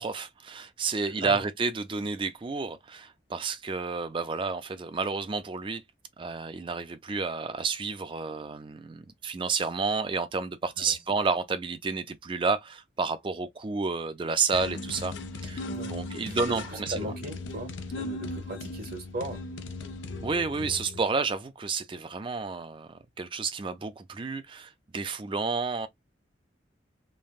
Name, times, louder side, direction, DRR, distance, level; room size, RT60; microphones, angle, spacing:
voice 1, 0.0-5.8 6.2-15.2 15.4-17.2 20.2-25.9, right 4 dB, 25° right, 0.4 m, -31 dB
sound 1, 14.5-21.0, left 2 dB, 85° left, 0.6 m, -37 dB
voice 2, 16.2-19.4, right 1 dB, 50° right, 1.0 m, -38 dB
3.3 x 2.2 x 2.3 m
head